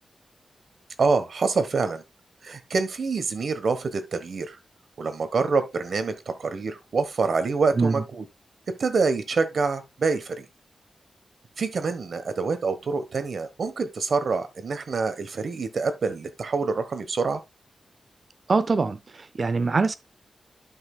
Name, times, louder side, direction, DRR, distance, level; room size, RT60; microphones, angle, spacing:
voice 1, 1.0-2.0 2.4-4.6 5.0-8.2 8.8-10.5 11.6-17.4, right 4 dB, 65° right, 1.3 m, -26 dB
voice 2, 18.5-19.9, right 4 dB, 45° right, 0.5 m, -23 dB
11.5 x 5.8 x 2.3 m
wide cardioid pair, 120°, 0 cm